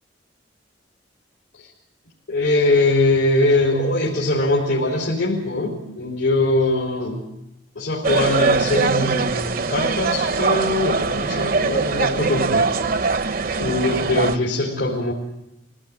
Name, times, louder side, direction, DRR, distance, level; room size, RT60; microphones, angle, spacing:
voice 1, 2.3-7.3 7.7-12.7 13.6-15.1, left 2 dB, 85° left, -4 dB, 4.3 m, -21 dB
sound 1, 8.0-14.4, right 4 dB, 50° right, 0.7 m, -22 dB
23.0 x 18.0 x 8.9 m, 0.87 s
head